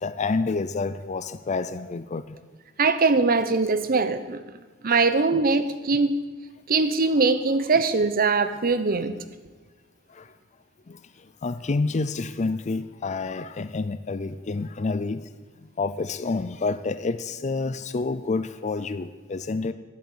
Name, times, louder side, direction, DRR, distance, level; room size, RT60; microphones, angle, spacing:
voice 1, 0.0-2.4 10.2-10.3 10.9-11.0 11.4-15.2 15.8-19.7, left 3 dB, 35° left, 12 dB, 0.5 m, -28 dB
voice 2, 2.8-4.4 4.8-6.1 6.7-9.1, right 4 dB, 45° right, 12 dB, 0.9 m, -22 dB
11.5 x 8.8 x 8.6 m, 1.3 s
head